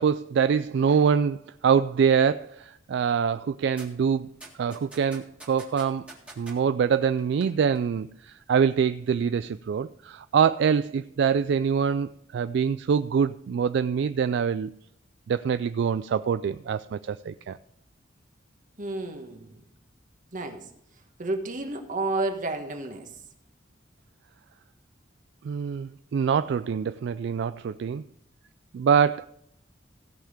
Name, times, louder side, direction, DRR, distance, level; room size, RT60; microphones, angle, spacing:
voice 1, 0.0-4.3 4.6-6.0 6.4-14.7 15.3-17.6 25.4-28.0 28.7-29.3, right 7 dB, 65° right, 12 dB, 0.3 m, -24 dB
sound 1, 3.8-3.9 4.4-6.6 7.2-7.5 7.8-7.9, right 2 dB, 5° right, 1.8 m, -45 dB
voice 2, 18.8-19.6 20.3-20.6 21.2-23.1, right 2 dB, 45° right, 5 dB, 1.4 m, -31 dB
16.5 x 5.7 x 5.0 m, 0.73 s
head